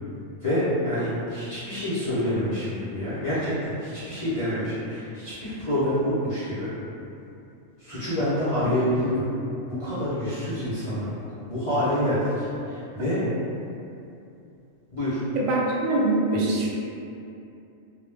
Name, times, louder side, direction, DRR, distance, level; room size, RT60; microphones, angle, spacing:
voice 1, 0.4-6.7 7.8-9.2 9.7-11.1 11.5-13.2 14.9-15.2, left 1 dB, 45° left, -14 dB, 0.4 m, -27 dB
voice 2, 15.3-16.7, right 2 dB, 90° right, -4 dB, 1.0 m, -23 dB
2.1 x 2.1 x 3.2 m, 2.7 s
omnidirectional pair, 1.4 m